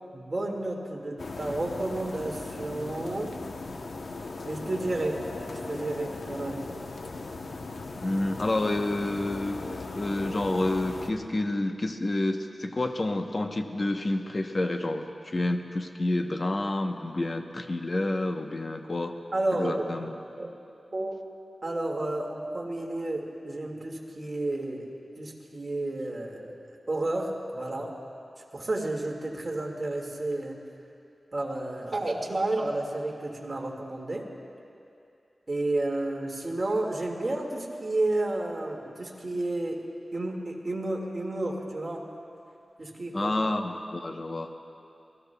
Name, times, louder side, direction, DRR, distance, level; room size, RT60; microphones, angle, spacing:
voice 1, 0.1-3.3 4.5-5.2 5.7-6.7 19.3-20.1 20.4-20.5 20.9-21.2 21.6-24.9 25.2-27.9 28.5-30.6 31.3-34.2 35.5-39.8 40.1-42.0 42.8-43.3, right 2 dB, 45° right, 0 dB, 1.9 m, -31 dB
sound 1, 1.2-11.1, left 3 dB, 75° left, 0.8 m, -38 dB
voice 2, 8.0-19.1 19.6-20.1 43.1-44.5, left 2 dB, 40° left, 5 dB, 0.9 m, -29 dB
26.5 x 18.5 x 2.3 m, 2.6 s
wide cardioid pair, 80°, 0 cm